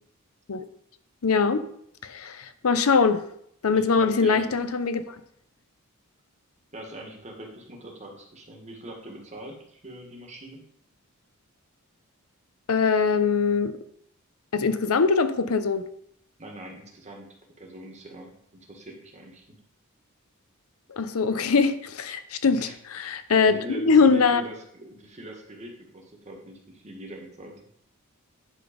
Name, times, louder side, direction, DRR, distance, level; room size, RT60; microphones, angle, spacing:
voice 1, 1.2-1.6 2.0-3.2 3.6-5.2 12.7-13.8 14.5-15.8 20.9-24.4, left 5 dB, 80° left, 11 dB, 0.7 m, -22 dB
voice 2, 3.7-4.5 6.7-10.6 16.4-17.3 17.6-19.6 22.4-22.8 23.4-27.6, right 1 dB, 35° right, 1 dB, 1.6 m, -42 dB
9.9 x 4.0 x 5.1 m, 0.68 s
head